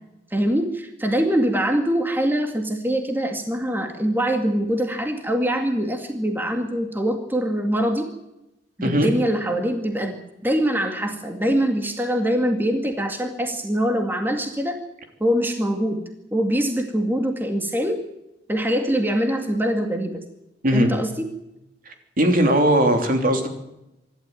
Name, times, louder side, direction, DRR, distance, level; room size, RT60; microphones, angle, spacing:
voice 1, 0.3-8.1 8.8-14.8 15.2-16.0 16.3-18.0 18.5-20.2 20.7-21.3, equal, 10° right, 4 dB, 2.2 m, -23 dB
voice 2, 22.2-23.5, right 1 dB, 50° right, 4 dB, 3.3 m, -18 dB
26.0 x 12.0 x 9.2 m, 0.91 s
head